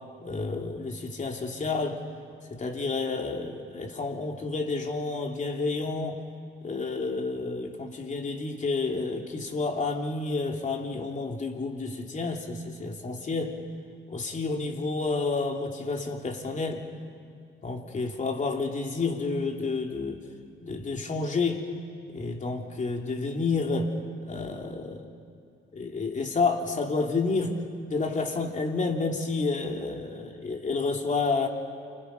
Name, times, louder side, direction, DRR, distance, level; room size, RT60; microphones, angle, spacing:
voice 1, 0.2-2.0 2.5-6.2 6.6-13.6 14.1-16.8 17.6-20.2 20.6-21.7 22.1-23.9 24.2-25.1 25.7-27.6 27.9-31.5, left 3 dB, 40° left, 2 dB, 3.2 m, -30 dB
29.5 x 26.5 x 5.5 m, 2.4 s
cardioid pair, 90°, 20 cm